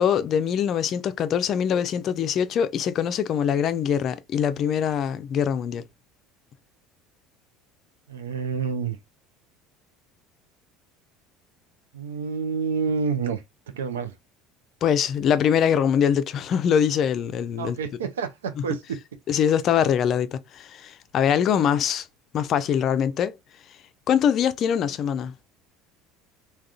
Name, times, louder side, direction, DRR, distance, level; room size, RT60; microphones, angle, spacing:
voice 1, 0.0-5.8 14.8-17.8 18.5-19.0 19.3-20.3 20.6-22.1 22.3-23.3 24.1-25.3, left 8 dB, 50° left, 0.4 m, -23 dB
voice 2, 8.1-9.0 11.9-14.1 17.6-19.0, right 6 dB, 85° right, 0.4 m, -28 dB
3.6 x 2.2 x 2.4 m
hypercardioid pair, 75°, 0 cm